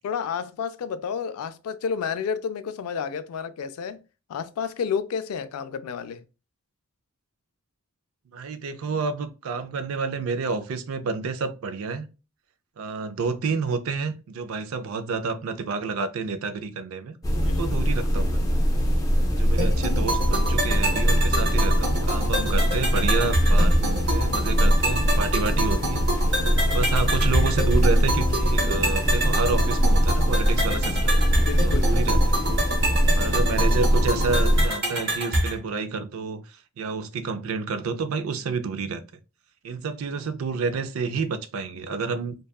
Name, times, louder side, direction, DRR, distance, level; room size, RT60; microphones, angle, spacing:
voice 1, 0.0-4.0 4.3-6.2 17.4-17.6 31.4-31.8, left 6 dB, 90° left, 0.3 m, -30 dB
voice 2, 8.3-12.1 12.8-18.4 19.4-26.1 26.7-31.2 31.6-32.4 33.1-39.0 39.6-42.5, right 4 dB, 75° right, 0.4 m, -29 dB
sound 1, 17.2-34.7, equal, 15° left, 0.4 m, -22 dB
sound 2, 19.6-35.6, right 1 dB, 50° right, 0.9 m, -27 dB
2.7 x 2.3 x 2.2 m
head